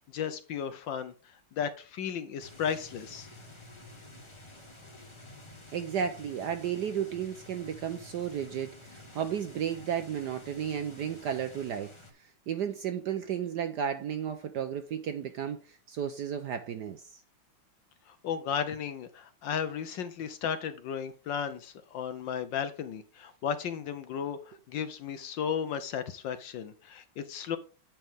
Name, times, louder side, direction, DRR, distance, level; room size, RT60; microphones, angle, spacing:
voice 1, 0.1-1.1 1.5-3.3 18.2-27.6, left 7 dB, 70° left, 1.3 m, -34 dB
sound 1, 2.4-12.1, left 2 dB, 15° left, 1.2 m, -50 dB
voice 2, 5.7-11.9 12.2-17.2, right 8 dB, 65° right, 1.1 m, -33 dB
8.5 x 5.9 x 3.5 m
omnidirectional pair, 2.4 m